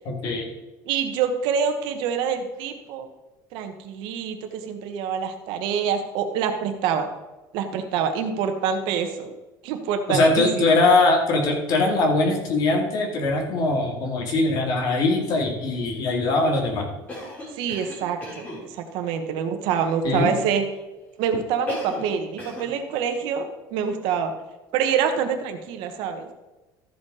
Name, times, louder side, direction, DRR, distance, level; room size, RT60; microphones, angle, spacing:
voice 1, 0.0-0.5 10.1-16.9 20.0-20.4, left 2 dB, 50° left, 0 dB, 2.4 m, -21 dB
voice 2, 0.8-3.1 3.5-7.1 7.5-9.3 9.6-10.7 17.5-20.6 21.2-24.3 24.7-26.3, right 7 dB, 75° right, 6 dB, 1.3 m, -26 dB
Cough, 17.1-18.6 21.7-22.1 22.4-22.7, left 1 dB, 20° left, 3.3 m, -35 dB
13.5 x 5.2 x 4.9 m, 1.1 s
cardioid pair, 165°, 9 cm